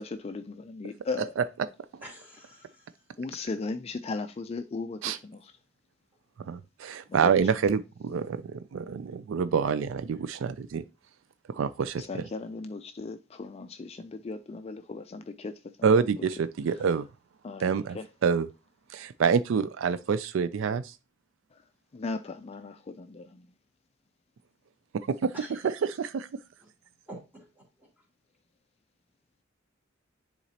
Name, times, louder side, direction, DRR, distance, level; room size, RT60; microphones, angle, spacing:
voice 1, 0.0-1.3 2.6-2.7 3.2-5.5 7.1-7.5 12.0-16.3 16.7-16.8 17.4-18.1 21.5-23.5, left 3 dB, 30° left, 0.3 m, -37 dB
voice 2, 2.0-2.9 10.1-10.3 25.3-25.6 27.1-27.9, right 1 dB, 10° right, 2.8 m, -47 dB
voice 3, 6.4-10.8 11.5-12.1 15.8-17.1 17.6-18.0 18.2-18.5 18.9-21.0 24.9-26.4, right 6 dB, 65° right, 0.3 m, -27 dB
10.0 x 4.0 x 2.8 m
head